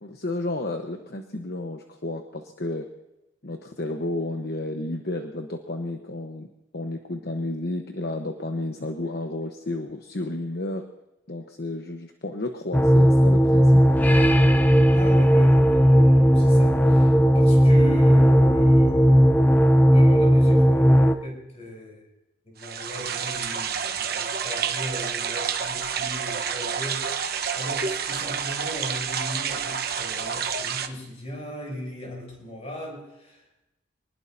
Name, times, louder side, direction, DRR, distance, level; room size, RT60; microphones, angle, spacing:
voice 1, 0.0-2.9 3.4-6.5 6.7-10.9 11.3-13.8, left 2 dB, 55° left, 4 dB, 1.1 m, -32 dB
sound 1, 12.7-21.1, equal, 10° left, 0.7 m, -16 dB
voice 2, 14.9-19.5 19.9-22.1 22.5-33.7, left 1 dB, 30° left, -1 dB, 7.2 m, -38 dB
sound 2, 22.6-30.9, right 7 dB, 50° right, 1.1 m, -29 dB
25.5 x 20.0 x 2.7 m, 0.96 s
head